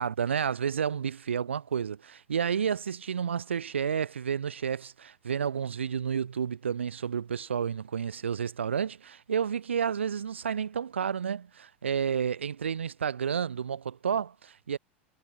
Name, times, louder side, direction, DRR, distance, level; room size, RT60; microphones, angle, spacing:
voice 1, 0.0-14.8, right 7 dB, 90° right, 1.6 m, -31 dB
hypercardioid pair, 95°, 6 cm